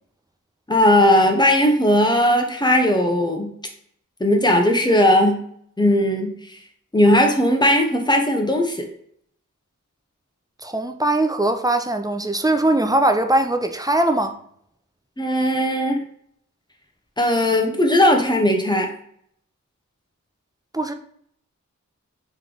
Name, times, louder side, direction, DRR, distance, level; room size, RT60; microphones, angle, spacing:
voice 1, 0.7-3.5 4.2-5.4 5.8-6.3 6.9-8.9 15.2-16.0 17.2-18.9, left 1 dB, 15° left, 0.8 m, -17 dB
voice 2, 10.6-14.3 20.7-20.9, right 1 dB, 10° right, 0.4 m, -20 dB
3.2 x 3.2 x 3.8 m
cardioid pair, 40°, 32 cm